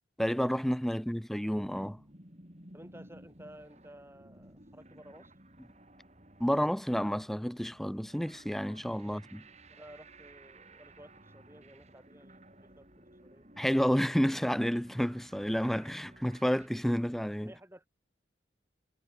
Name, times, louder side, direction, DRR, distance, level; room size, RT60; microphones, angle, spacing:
voice 1, 0.2-2.0 6.4-9.4 13.6-17.5, equal, ahead, 0.4 m, -30 dB
sound 1, 1.6-16.7, right 1 dB, 40° right, 7.8 m, -56 dB
voice 2, 2.7-5.3 9.0-9.2 9.7-13.5 17.5-17.9, right 1 dB, 15° right, 6.2 m, -54 dB
head